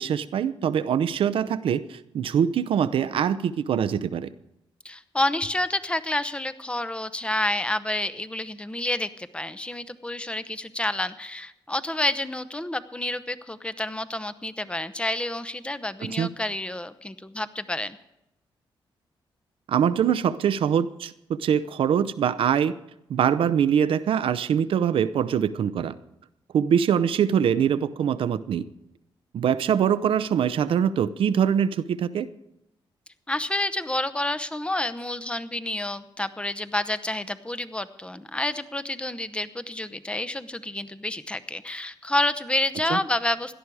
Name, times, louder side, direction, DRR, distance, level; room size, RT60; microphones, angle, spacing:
voice 1, 0.0-4.3 16.0-16.3 19.7-22.7 23.1-25.9 26.5-28.7 29.3-32.3 42.9-43.0, right 8 dB, 75° right, 14 dB, 0.7 m, -23 dB
voice 2, 4.8-18.0 33.3-43.5, left 1 dB, 10° left, 13 dB, 0.8 m, -29 dB
17.5 x 11.5 x 4.8 m, 0.87 s
cardioid pair, 85°, 9 cm